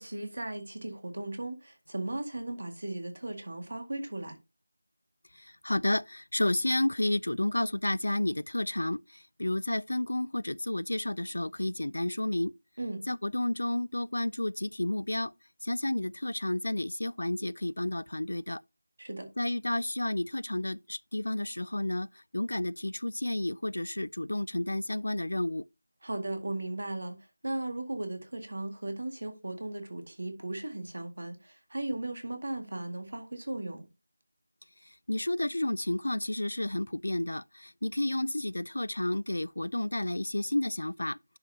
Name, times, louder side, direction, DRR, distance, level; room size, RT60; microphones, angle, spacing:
voice 1, 0.0-4.3 12.8-13.0 19.0-19.3 26.0-27.2 27.4-33.9, right 2 dB, 50° right, 1.9 m, -36 dB
voice 2, 5.4-12.5 13.1-15.3 15.6-18.6 19.4-25.6 35.1-41.2, left 1 dB, 80° left, 0.3 m, -31 dB
10.0 x 5.6 x 2.8 m
figure-of-eight pair, 180°, 0 cm